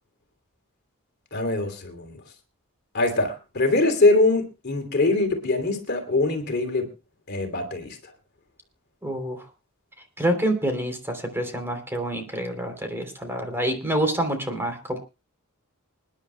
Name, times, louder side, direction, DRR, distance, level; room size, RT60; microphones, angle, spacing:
voice 1, 1.3-2.2 2.9-6.9 7.3-8.0, left 2 dB, 50° left, 5 dB, 3.0 m, -23 dB
voice 2, 9.0-9.4 10.2-15.0, right 1 dB, 10° right, 5 dB, 3.2 m, -27 dB
28.0 x 10.5 x 2.2 m, 0.29 s
head